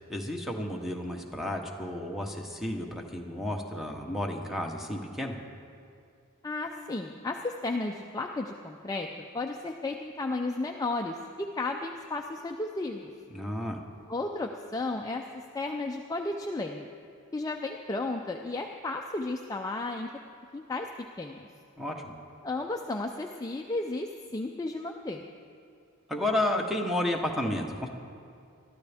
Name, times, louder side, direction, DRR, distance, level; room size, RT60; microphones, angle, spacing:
voice 1, 0.1-5.4 13.3-13.8 21.8-21.9 26.1-27.9, left 1 dB, ahead, 2 dB, 1.0 m, -32 dB
voice 2, 6.4-13.1 14.1-16.9 17.3-20.1 20.5-20.9 21.2-21.5 22.4-25.3, left 2 dB, 15° left, 2 dB, 0.4 m, -33 dB
22.0 x 13.0 x 3.5 m, 2.4 s
head